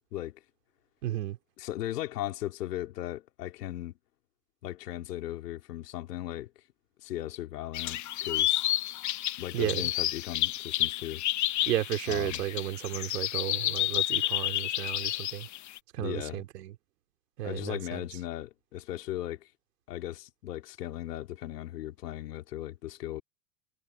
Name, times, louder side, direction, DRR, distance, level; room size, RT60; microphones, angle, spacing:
voice 1, 1.0-1.4 9.5-9.9 11.7-15.5 15.9-16.7 17.4-18.0, right 13 dB, 80° right, 3.2 m, -33 dB
voice 2, 1.6-4.0 4.6-6.5 7.0-8.7 9.4-11.2 12.1-12.4 16.0-16.4 17.4-19.5 19.9-23.2, left 14 dB, 80° left, 4.2 m, -37 dB
sound 1, 7.7-15.8, left 14 dB, 40° left, 1.1 m, -30 dB
hypercardioid pair, 90°, 47 cm